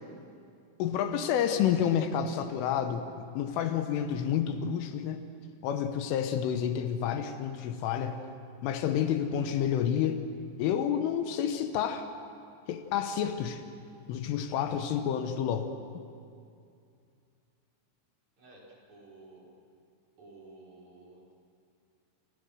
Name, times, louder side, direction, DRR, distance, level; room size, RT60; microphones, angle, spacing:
voice 1, 0.8-5.2 5.6-8.2 8.6-10.2 10.6-12.1 12.7-13.6 14.1-15.7, left 9 dB, 80° left, 8 dB, 3.5 m, -29 dB
voice 2, 18.4-19.5 20.2-21.3, right 2 dB, 35° right, -3 dB, 5.9 m, -53 dB
29.0 x 27.0 x 6.5 m, 2.4 s
omnidirectional pair, 5.9 m